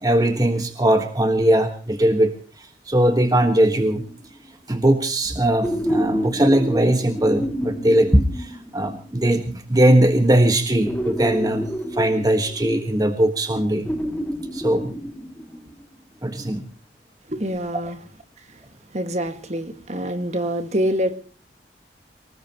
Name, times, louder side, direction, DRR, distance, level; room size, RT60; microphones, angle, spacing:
voice 1, 0.0-2.3 2.9-4.0 4.7-11.7 11.9-13.9 14.5-15.0 16.2-16.6, right 1 dB, 20° right, 7 dB, 1.5 m, -19 dB
sound 1, 3.8-4.5 5.6-9.2 10.9-13.1 13.8-15.9 17.5-17.6, equal, 10° left, 2.4 m, -29 dB
voice 2, 17.3-18.0 18.5-18.6 18.9-21.2, equal, 40° right, 9 dB, 1.9 m, -26 dB
25.0 x 19.5 x 3.0 m, 0.38 s
head